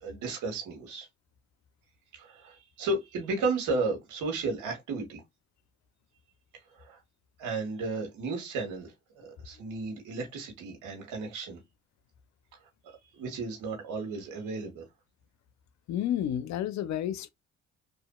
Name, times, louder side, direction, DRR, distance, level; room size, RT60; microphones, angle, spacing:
voice 1, 0.0-1.1 2.1-5.2 6.7-7.0 7.4-11.6 13.1-14.9, right 3 dB, 85° right, 1.1 m, -34 dB
voice 2, 15.9-17.3, left 11 dB, 70° left, 0.5 m, -30 dB
2.8 x 2.4 x 2.2 m
supercardioid pair, 55°, 29 cm